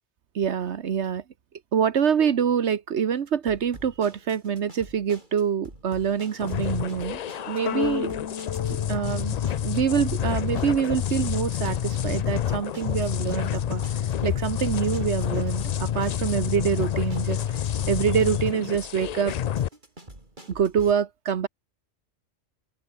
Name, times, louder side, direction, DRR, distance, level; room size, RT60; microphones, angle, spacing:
voice 1, 0.3-1.2 1.7-7.2 7.5-8.1 8.7-9.3 9.6-13.8 14.2-17.6 17.9-19.3 20.5-21.5, right 7 dB, 70° right, 1.3 m, -25 dB
sound 1, 3.5-20.9, right 1 dB, 40° right, 5.6 m, -47 dB
sound 2, 6.4-19.7, left 10 dB, 70° left, 0.4 m, -28 dB
sound 3, 7.7-10.2, left 8 dB, 85° left, 1.4 m, -33 dB
open air
omnidirectional pair, 1.2 m